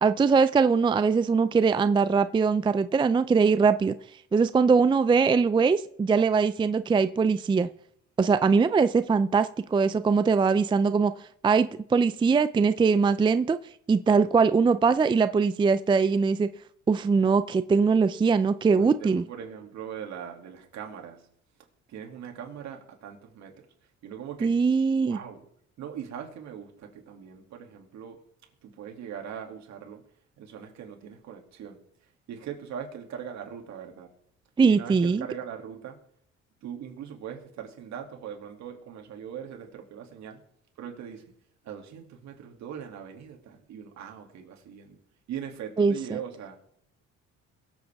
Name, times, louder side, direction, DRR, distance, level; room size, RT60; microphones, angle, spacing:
voice 1, 0.0-3.9 4.3-7.7 8.2-11.1 11.4-13.6 13.9-16.5 16.9-19.2 24.4-25.2 34.6-35.2 45.8-45.9, right 5 dB, 15° right, 13 dB, 0.4 m, -22 dB
voice 2, 18.7-21.2 21.9-23.5 24.0-24.5 24.9-25.4 25.8-28.2 28.6-30.0 30.4-31.8 32.3-34.1 34.6-36.0 36.6-40.4 40.8-41.3 41.6-45.0 45.3-46.6, right 8 dB, 65° right, 2 dB, 2.5 m, -40 dB
22.5 x 7.9 x 3.5 m, 0.68 s
cardioid pair, 95°, 30 cm